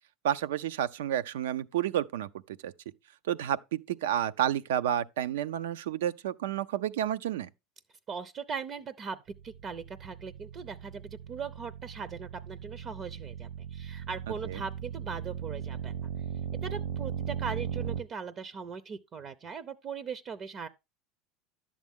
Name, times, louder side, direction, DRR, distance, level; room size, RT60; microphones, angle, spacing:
voice 1, 0.2-2.7 3.2-7.5 14.4-14.6, right 11 dB, 85° right, 0.5 m, -30 dB
voice 2, 8.1-11.0 11.3-16.1 16.6-20.7, right 6 dB, 35° right, 0.6 m, -39 dB
sound 1, 9.3-18.0, right 8 dB, 70° right, 1.1 m, -38 dB
10.5 x 7.3 x 3.6 m
supercardioid pair, 115°, 0 cm